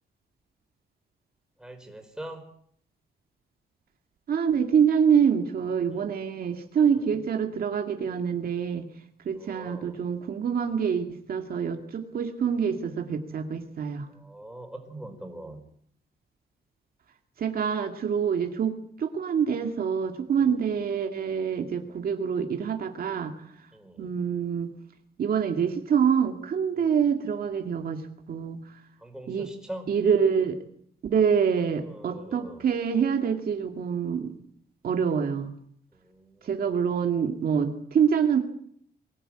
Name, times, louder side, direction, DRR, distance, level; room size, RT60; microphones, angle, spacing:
voice 1, 1.6-2.4 5.9-6.0 6.9-7.3 9.3-10.0 14.1-15.6 20.4-20.7 23.7-24.2 26.7-27.0 29.0-29.9 31.8-32.6 35.9-36.9, right 1 dB, 5° right, 4 dB, 4.7 m, -43 dB
voice 2, 4.3-8.9 9.3-14.1 17.4-23.3 24.0-24.7 25.2-28.6 29.3-29.5 29.9-30.6 31.1-34.3 34.8-35.5 36.4-38.4, right 7 dB, 60° right, 5 dB, 2.2 m, -26 dB
23.5 x 16.5 x 8.9 m, 0.65 s
wide cardioid pair, 155°, 17 cm